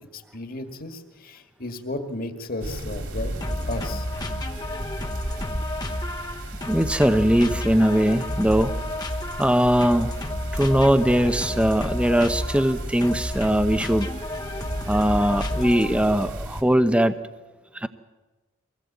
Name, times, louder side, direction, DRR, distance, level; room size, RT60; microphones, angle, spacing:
voice 1, 0.0-3.3 3.7-4.1, left 2 dB, 45° left, 5 dB, 2.0 m, -34 dB
sound 1, 2.6-16.6, right 1 dB, 60° right, 2.7 m, -34 dB
sound 2, 3.4-16.2, left 1 dB, 20° left, 1.0 m, -32 dB
voice 2, 6.7-8.8 9.4-10.1 10.5-14.1 14.9-17.2 17.7-17.9, equal, 5° right, 10 dB, 0.7 m, -20 dB
24.0 x 18.0 x 8.3 m, 1.2 s
head